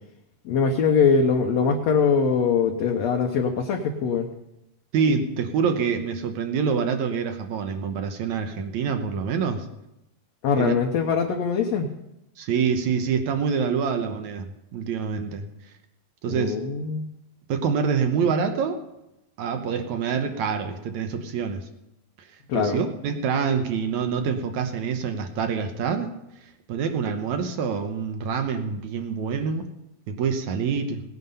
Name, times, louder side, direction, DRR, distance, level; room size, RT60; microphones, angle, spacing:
voice 1, 0.5-4.3 10.4-11.9 16.3-17.1 22.5-22.8, left 5 dB, 70° left, 3 dB, 1.7 m, -22 dB
voice 2, 4.9-9.7 10.6-10.8 12.4-15.5 16.2-16.7 17.5-18.8 19.4-21.7 22.5-26.1 26.7-29.7 30.1-31.0, right 6 dB, 70° right, 6 dB, 2.0 m, -26 dB
18.0 x 9.5 x 5.5 m, 0.89 s
omnidirectional pair, 4.1 m